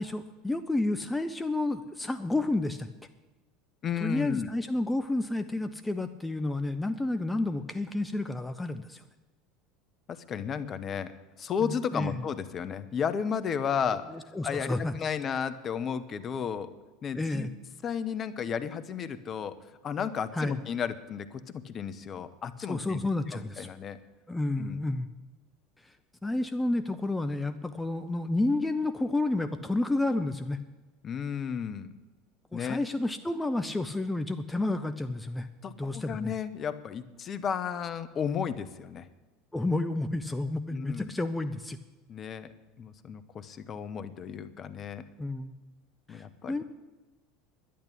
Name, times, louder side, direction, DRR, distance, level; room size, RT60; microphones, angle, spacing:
voice 1, 0.0-2.9 4.0-9.0 11.6-12.2 14.1-14.9 17.1-17.5 20.3-20.6 22.7-23.7 24.3-25.1 25.8-25.9 26.2-30.6 32.5-35.5 35.8-36.3 39.5-41.8 45.2-45.5 46.1-46.6, left 2 dB, 10° left, 9 dB, 0.7 m, -30 dB
voice 2, 3.8-4.5 10.1-11.1 11.4-14.0 14.4-16.7 17.0-17.5 17.8-19.5 19.8-24.0 24.6-24.8 31.0-31.9 32.5-32.8 35.6-39.1 40.7-41.1 42.1-42.5 42.8-45.0 46.1-46.6, left 7 dB, 35° left, 12 dB, 1.0 m, -33 dB
10.5 x 10.5 x 8.5 m, 1.2 s
figure-of-eight pair, 75°, 0 cm